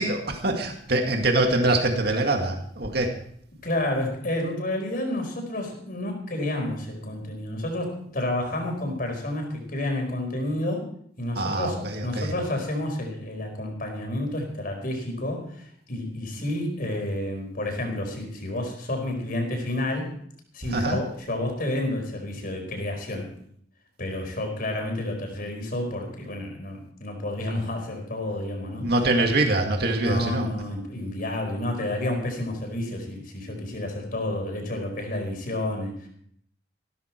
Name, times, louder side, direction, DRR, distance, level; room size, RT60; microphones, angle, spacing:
voice 1, 0.0-3.2 11.4-12.3 20.7-21.0 28.8-30.5, right 2 dB, 60° right, 3 dB, 2.1 m, -24 dB
voice 2, 3.6-10.8 11.2-20.1 20.5-23.3 24.0-28.9 29.9-36.1, left 1 dB, 50° left, 3 dB, 4.7 m, -30 dB
15.5 x 13.5 x 4.5 m, 0.64 s
head